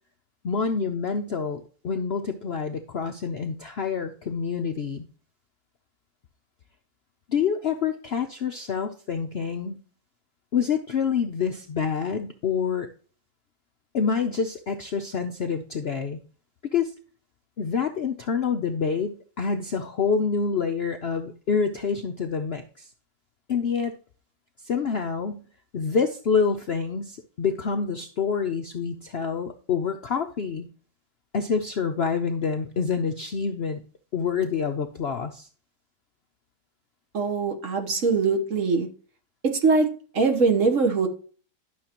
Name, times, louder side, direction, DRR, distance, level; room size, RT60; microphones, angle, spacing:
voice 1, 0.4-5.0 7.3-9.8 10.5-12.9 13.9-16.2 16.7-16.9 17.6-22.9 23.5-24.0 24.6-25.4 25.7-30.7 31.3-33.8 34.1-35.5, left 6 dB, 70° left, 6 dB, 0.6 m, -27 dB
voice 2, 37.1-38.9 39.6-39.9 40.1-41.1, right 4 dB, 50° right, 5 dB, 1.4 m, -22 dB
11.5 x 6.4 x 2.9 m, 0.41 s
omnidirectional pair, 1.8 m